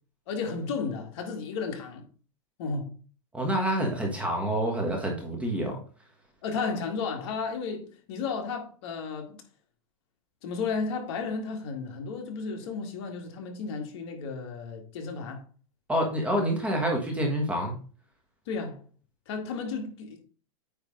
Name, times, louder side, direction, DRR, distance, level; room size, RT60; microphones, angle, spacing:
voice 1, 0.3-2.1 2.6-2.9 6.4-9.4 10.4-15.4 18.5-18.8 19.3-20.2, left 4 dB, 45° left, 2.0 m, -33 dB
voice 2, 3.3-5.8 15.9-17.8, equal, 5° right, 1.3 m, -27 dB
8.9 x 3.4 x 5.3 m
supercardioid pair, 160°, 18 cm